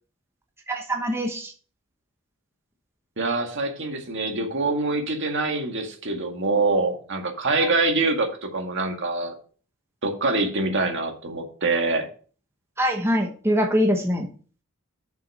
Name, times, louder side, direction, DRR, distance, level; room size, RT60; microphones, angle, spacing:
voice 1, 0.7-1.5 12.8-14.3, equal, 10° right, 2 dB, 1.0 m, -23 dB
voice 2, 3.2-9.3 10.0-12.1, right 3 dB, 60° right, 3 dB, 1.9 m, -25 dB
6.9 x 6.2 x 5.5 m, 0.41 s
head